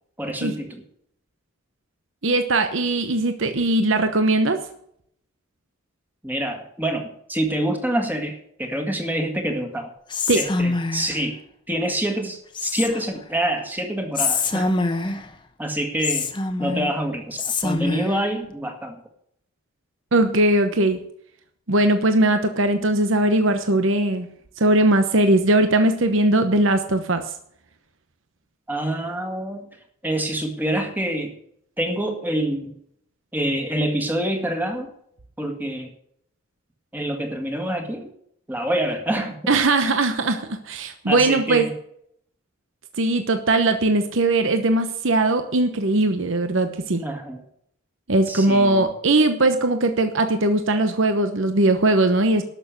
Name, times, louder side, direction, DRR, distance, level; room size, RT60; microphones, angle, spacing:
voice 1, 0.2-0.8 6.2-9.9 10.3-11.4 11.7-14.8 15.6-16.3 16.6-19.0 28.7-29.7 30.0-31.3 31.8-32.8 33.3-34.9 35.4-35.9 36.9-38.1 38.5-39.5 41.1-41.7 47.0-47.4 48.3-48.9, right 1 dB, 10° right, 4 dB, 1.9 m, -26 dB
voice 2, 2.2-4.6 10.3-10.4 20.1-21.0 21.7-24.3 24.6-27.2 39.5-41.7 43.0-47.0 48.1-52.4, right 2 dB, 65° right, 8 dB, 1.0 m, -20 dB
Whispering, 10.1-11.2 12.5-13.2 14.1-15.3 16.0-16.9 17.4-18.2, left 3 dB, 20° left, 1.0 m, -25 dB
12.5 x 6.7 x 8.2 m, 0.69 s
head